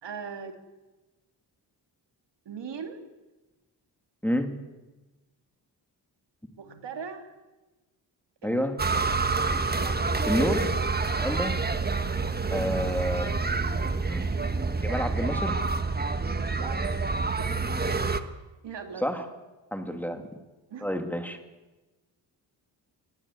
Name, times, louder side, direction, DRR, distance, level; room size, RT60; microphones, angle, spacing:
voice 1, 0.0-0.5 2.4-3.0 6.6-7.3 8.4-8.7 9.6-10.3 10.8-11.4 16.6-17.0 17.4-17.5 17.8-18.2 18.6-19.2 19.9-20.0 20.7-20.9, right 6 dB, 70° right, 5 dB, 2.6 m, -40 dB
voice 2, 8.4-8.8 10.3-10.7 11.1-11.5 12.5-13.3 14.1-14.2 14.8-15.6 19.0-19.2 19.7-20.3 20.8-21.4, equal, 5° left, 5 dB, 2.5 m, -29 dB
sound 1, 8.8-18.2, right 4 dB, 20° right, 1.4 m, -27 dB
18.5 x 17.0 x 8.4 m, 1.1 s
cardioid pair, 75°, 44 cm